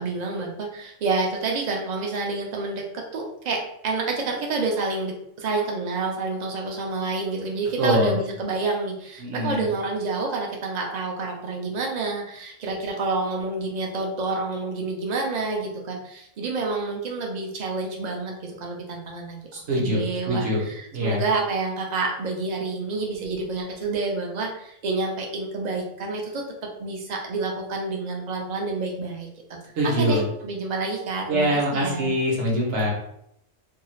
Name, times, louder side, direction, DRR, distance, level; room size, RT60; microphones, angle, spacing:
voice 1, 0.0-2.9 3.1-19.4 19.8-29.6 29.8-32.1, right 3 dB, 50° right, 0 dB, 0.5 m, -28 dB
voice 2, 7.8-8.1 9.2-9.7 19.5-20.0 20.3-20.6 20.9-21.2 29.8-30.2 31.3-32.9, equal, 65° right, -2 dB, 1.1 m, -23 dB
2.7 x 2.3 x 3.0 m, 0.75 s
omnidirectional pair, 1.3 m